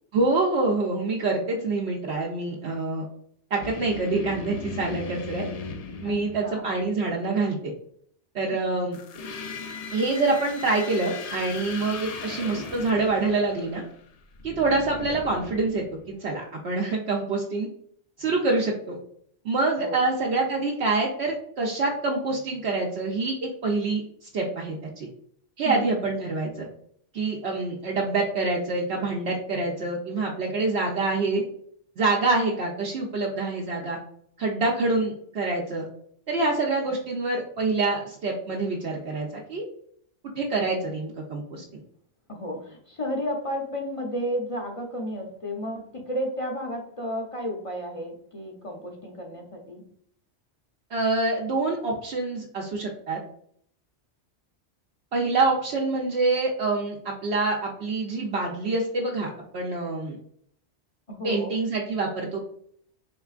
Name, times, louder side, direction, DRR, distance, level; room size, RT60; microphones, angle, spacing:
voice 1, 0.1-3.0 3.5-5.5 6.0-7.7 8.3-9.0 9.9-13.8 14.4-17.7 18.2-19.0 19.4-25.1 25.6-26.7 27.1-31.4 32.0-34.0 34.4-35.8 36.3-39.6 40.4-41.8 50.9-53.2 55.1-60.2 61.2-62.4, right 3 dB, 65° right, -2 dB, 0.9 m, -26 dB
sound 1, 3.6-6.9 8.9-16.2, left 4 dB, 70° left, 0.3 m, -38 dB
voice 2, 6.0-6.6 8.5-8.9 19.8-20.0 25.6-25.9 42.3-49.9 61.1-61.6, equal, 35° left, 0 dB, 0.6 m, -33 dB
4.4 x 3.4 x 2.4 m, 0.64 s
omnidirectional pair, 1.2 m